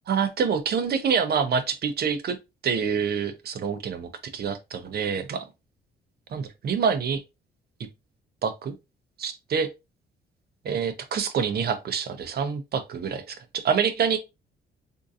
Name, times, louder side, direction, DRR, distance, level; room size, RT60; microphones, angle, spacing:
voice 1, 0.1-2.4 2.6-5.4 6.3-7.2 8.4-8.7 9.2-9.7 10.6-14.2, right 6 dB, 50° right, 0.7 m, -26 dB
3.7 x 2.6 x 2.5 m
cardioid pair, 90°, 20 cm